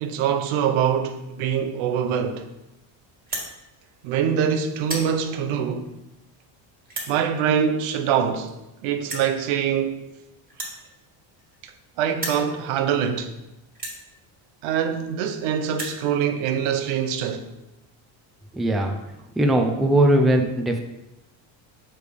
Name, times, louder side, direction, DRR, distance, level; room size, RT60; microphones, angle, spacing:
voice 1, 0.0-2.5 4.0-5.9 7.1-8.5 8.8-10.1 11.6-11.7 12.0-13.4 14.6-17.5, right 8 dB, 90° right, 0.8 m, -24 dB
sound 1, 3.2-3.5 4.2-4.4 4.7-5.1 5.9-6.0 6.9-7.1 8.2-8.3 8.5-8.6 9.1-9.3 10.5-11.8 12.1-12.5 13.2-13.3 13.7-14.0 14.9-15.0 15.2-15.3 15.6-16.0, right 1 dB, 20° right, 1.9 m, -33 dB
voice 2, 18.5-19.0 19.4-20.8, right 1 dB, ahead, 0.4 m, -19 dB
6.7 x 3.3 x 5.1 m
cardioid pair, 130°, 49 cm